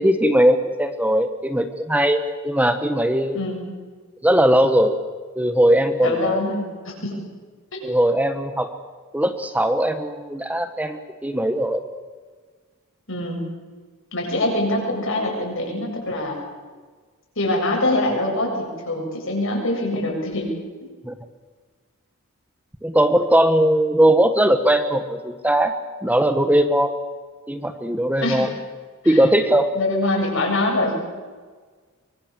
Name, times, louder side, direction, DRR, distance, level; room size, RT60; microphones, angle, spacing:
voice 1, 0.0-3.4 4.2-5.0 5.4-6.4 7.8-8.7 9.1-11.8 21.0-21.1 22.8-25.7 26.0-26.9 27.5-28.5 29.0-29.7, right 1 dB, 5° right, 8 dB, 1.2 m, -19 dB
voice 2, 6.0-7.2 7.7-7.8 13.1-13.4 14.1-16.4 17.4-20.5 28.2-28.5 29.0-29.2 29.7-31.0, left 1 dB, 60° left, 1 dB, 7.5 m, -24 dB
24.5 x 24.0 x 7.5 m, 1.5 s
head